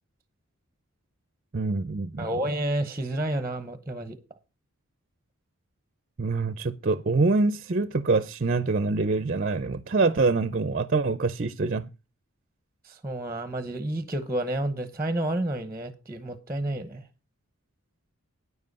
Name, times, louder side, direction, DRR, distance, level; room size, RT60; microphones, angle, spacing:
voice 1, 1.5-2.3 6.2-11.9, right 3 dB, 40° right, 0.5 m, -25 dB
voice 2, 2.2-4.2 12.8-17.0, right 1 dB, 10° right, 0.8 m, -30 dB
9.8 x 7.5 x 5.3 m
head